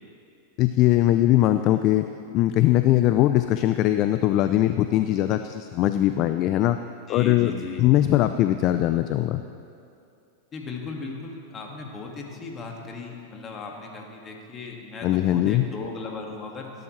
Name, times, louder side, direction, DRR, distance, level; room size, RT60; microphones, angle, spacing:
voice 1, 0.6-2.0 2.3-6.8 7.1-7.5 7.8-9.4 15.0-15.7, left 14 dB, 45° left, 10 dB, 0.4 m, -21 dB
voice 2, 7.1-7.9 10.5-16.7, left 4 dB, 30° left, 0 dB, 2.0 m, -37 dB
17.5 x 11.0 x 3.2 m, 2.6 s
hypercardioid pair, 115°, 0 cm